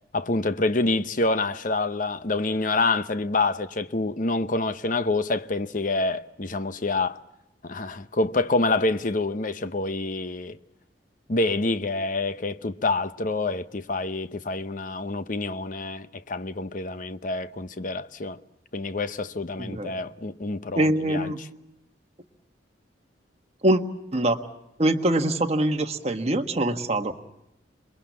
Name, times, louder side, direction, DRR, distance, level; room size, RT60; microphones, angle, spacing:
voice 1, 0.1-7.2 7.6-10.6 11.3-18.4 18.7-21.3, left 2 dB, 50° left, 0.9 m, -27 dB
voice 2, 19.6-20.0 20.7-21.4 23.6-23.8 24.1-24.4 24.8-27.1, right 1 dB, 35° right, 1.4 m, -23 dB
27.0 x 22.0 x 7.3 m
head